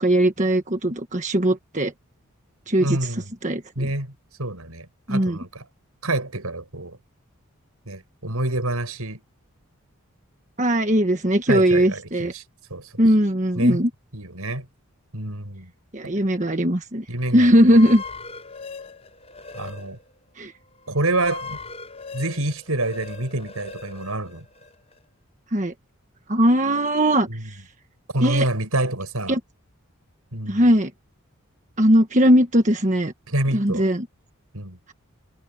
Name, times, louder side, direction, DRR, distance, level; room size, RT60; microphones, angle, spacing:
voice 1, 0.0-1.9 2.7-3.0 3.4-3.9 5.1-5.4 10.6-12.3 13.0-13.9 15.9-17.0 17.3-18.0 20.4-20.5 25.5-25.7 26.3-27.6 28.2-28.5 29.3-29.4 30.5-30.9 31.8-33.1 33.5-34.1, equal, 35° right, 1.5 m, -19 dB
voice 2, 2.8-3.3 3.8-4.1 4.4-5.6 6.0-7.0 7.9-9.2 11.5-12.4 12.7-12.9 13.5-13.8 14.1-14.7 15.1-15.7 17.1-17.8 19.5-20.0 20.9-21.6 22.1-24.4 27.3-27.5 28.1-29.4 30.3-30.7 33.3-33.9 34.5-34.8, right 2 dB, 85° right, 6.2 m, -27 dB
sound 1, 17.6-20.2 20.7-25.0, left 4 dB, 25° left, 5.4 m, -39 dB
head